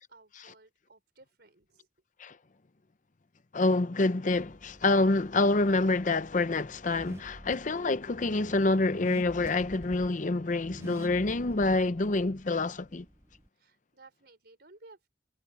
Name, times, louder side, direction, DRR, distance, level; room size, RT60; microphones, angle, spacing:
voice 1, 0.0-1.9 13.5-15.1, right 3 dB, 65° right, 5.2 m, -57 dB
voice 2, 3.5-13.1, left 2 dB, 45° left, 0.7 m, -27 dB
Car / Accelerating revving vroom, 4.3-13.5, equal, 15° right, 1.3 m, -49 dB
head